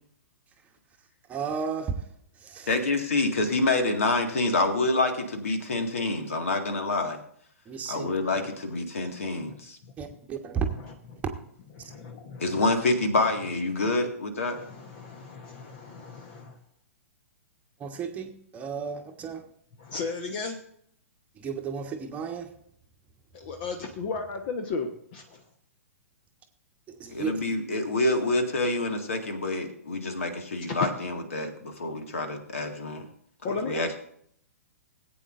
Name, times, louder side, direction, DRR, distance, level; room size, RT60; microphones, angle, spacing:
voice 1, 1.3-2.0 2.4-2.7 7.7-8.1 10.0-10.7 11.8-11.9 17.8-19.4 21.4-22.5 26.9-27.4, right 6 dB, 20° right, 4 dB, 1.2 m, -33 dB
voice 2, 2.7-7.2 7.9-9.8 12.4-14.7 27.1-33.1 33.5-33.9, left 2 dB, 60° left, 5 dB, 1.9 m, -27 dB
voice 3, 10.8-11.2 11.8-12.6 14.5-16.6 19.8-20.6 23.3-25.4 30.8-30.9 33.4-33.9, left 4 dB, 40° left, 4 dB, 1.1 m, -35 dB
19.0 x 8.7 x 2.6 m, 0.67 s
figure-of-eight pair, 110°, 8 cm